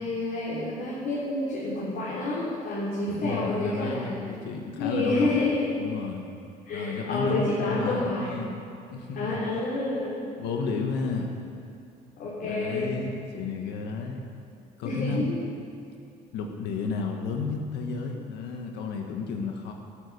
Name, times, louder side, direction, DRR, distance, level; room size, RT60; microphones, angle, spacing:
voice 1, 0.0-4.2 4.8-5.7 6.7-8.4 9.1-10.3 12.2-12.9 14.8-15.4, left 2 dB, 65° left, -8 dB, 3.7 m, -29 dB
voice 2, 3.1-5.4 5.8-6.3 6.7-8.6 8.9-9.4 10.4-11.4 12.4-14.2 14.8-15.3 16.3-19.7, left 4 dB, 85° left, 2 dB, 1.4 m, -32 dB
12.5 x 11.5 x 7.0 m, 2.4 s
cardioid pair, 110°, 17 cm